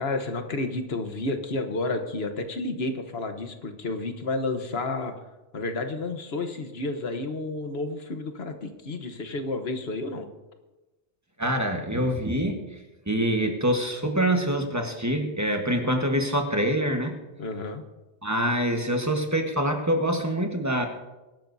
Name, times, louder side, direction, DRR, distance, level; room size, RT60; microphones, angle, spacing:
voice 1, 0.0-5.1 5.5-10.3 17.4-17.8, left 2 dB, 75° left, 6 dB, 1.3 m, -31 dB
voice 2, 11.4-12.6 13.1-17.2 18.2-20.8, right 1 dB, 15° right, 3 dB, 1.3 m, -25 dB
22.5 x 12.0 x 2.7 m, 1.1 s
omnidirectional pair, 1.1 m